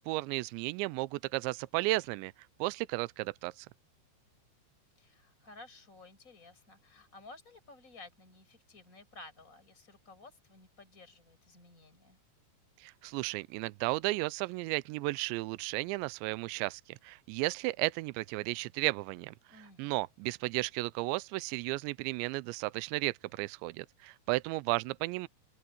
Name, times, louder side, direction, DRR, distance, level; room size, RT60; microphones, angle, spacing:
voice 1, 0.0-2.3 2.6-3.7 12.8-25.3, right 22 dB, 85° right, 2.9 m, -34 dB
voice 2, 5.0-12.2 19.5-20.0, left 3 dB, 15° left, 7.1 m, -54 dB
open air
omnidirectional pair, 5.2 m